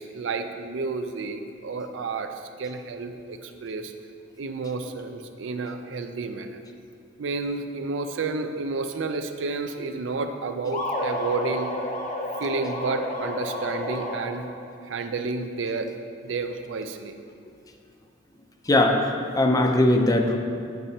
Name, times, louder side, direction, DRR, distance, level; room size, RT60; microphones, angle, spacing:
voice 1, 0.0-3.9 4.4-6.6 7.2-11.7 12.4-14.5 14.8-15.9 16.2-17.2, right 3 dB, 85° right, 7 dB, 0.5 m, -31 dB
sound 1, 10.7-14.6, left 1 dB, 40° left, 0.9 m, -30 dB
voice 2, 18.7-19.1 19.4-20.4, left 1 dB, 20° left, 3 dB, 0.4 m, -19 dB
8.8 x 6.7 x 2.8 m, 2.4 s
head